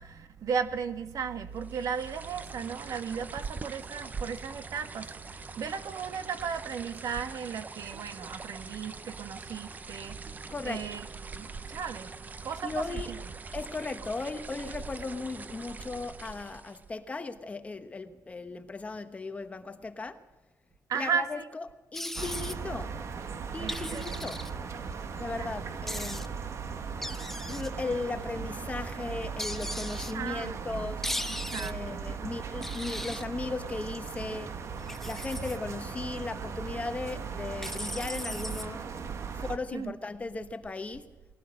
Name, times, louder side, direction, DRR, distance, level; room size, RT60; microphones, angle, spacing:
voice 1, 0.0-10.2 10.6-11.1 11.3-12.1 12.4-13.2 20.9-21.4 23.6-24.2 25.3-25.5 30.1-30.9 31.3-32.4 39.7-39.9, right 7 dB, 65° right, 1.6 m, -36 dB
sound 1, 1.6-17.0, right 4 dB, 25° right, 0.8 m, -43 dB
voice 2, 10.5-10.9 12.6-13.1 13.5-20.2 20.9-23.0 23.5-24.4 25.2-26.3 27.5-31.0 31.6-34.5 35.0-38.8 39.3-41.1, left 3 dB, 20° left, 1.2 m, -37 dB
sound 2, 21.9-22.6 23.7-24.5 25.9-26.3 27.0-27.7 29.4-30.1 31.0-31.7 32.6-33.2 34.8-35.6 37.6-38.7, left 1 dB, 5° left, 0.8 m, -37 dB
sound 3, 22.2-39.6, right 6 dB, 50° right, 1.4 m, -38 dB
21.0 x 16.5 x 7.7 m
wide cardioid pair, 165°, 6 cm